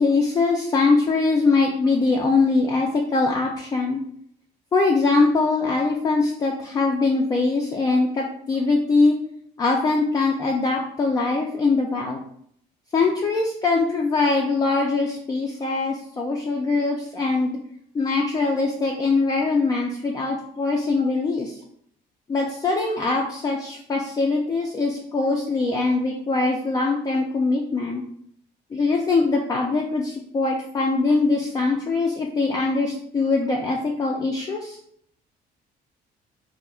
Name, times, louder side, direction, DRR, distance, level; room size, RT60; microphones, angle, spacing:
voice 1, 0.0-4.0 4.7-9.2 9.6-12.2 12.9-17.6 17.9-21.6 22.3-28.0 28.7-34.8, left 3 dB, 20° left, 0 dB, 0.3 m, -22 dB
2.3 x 2.0 x 3.5 m, 0.67 s
cardioid pair, 110°, 17 cm